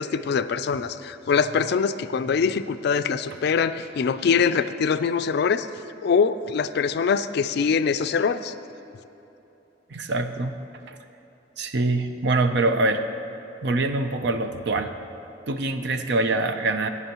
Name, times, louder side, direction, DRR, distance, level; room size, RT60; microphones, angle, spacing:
voice 1, 0.0-5.7 6.0-8.5, left 6 dB, 60° left, 12 dB, 0.4 m, -23 dB
voice 2, 9.9-10.6 10.9-11.0 11.6-13.1 13.6-14.9 15.5-16.9, right 2 dB, 65° right, 8 dB, 0.6 m, -24 dB
16.0 x 9.6 x 3.0 m, 3.0 s
head